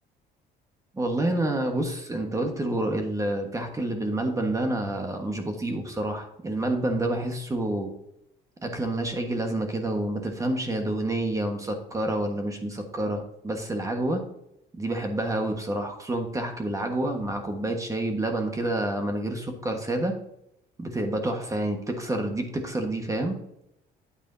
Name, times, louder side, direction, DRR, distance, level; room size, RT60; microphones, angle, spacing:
voice 1, 0.9-7.9 8.6-14.2 14.7-20.1 20.8-23.4, right 1 dB, 20° right, 4 dB, 1.4 m, -28 dB
9.2 x 8.7 x 2.7 m, 0.79 s
cardioid pair, 110°, 17 cm